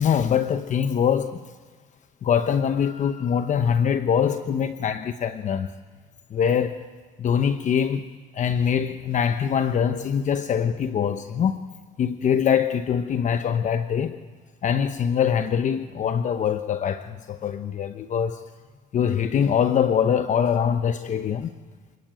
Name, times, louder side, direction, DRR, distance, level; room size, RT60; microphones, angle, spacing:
voice 1, 0.0-1.4 2.2-5.7 6.3-6.8 7.2-8.0 8.3-11.6 12.0-14.2 14.6-18.4 18.9-21.5, left 8 dB, 45° left, 1.0 m, -23 dB
27.5 x 20.0 x 9.1 m
cardioid pair, 110°, 17 cm